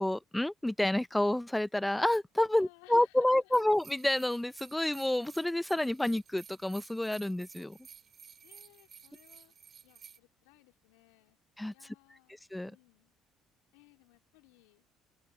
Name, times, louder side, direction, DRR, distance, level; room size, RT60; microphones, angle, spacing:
voice 1, 0.0-7.8 11.6-11.7 12.5-12.7, left 1 dB, 10° left, 0.5 m, -29 dB
voice 2, 2.5-3.5 8.4-9.5 9.8-11.4 11.7-12.4 12.6-13.1 13.7-14.9, left 26 dB, 85° left, 3.6 m, -62 dB
sound 1, 3.5-10.2, right 7 dB, 45° right, 2.8 m, -54 dB
open air
supercardioid pair, 70°, 0 cm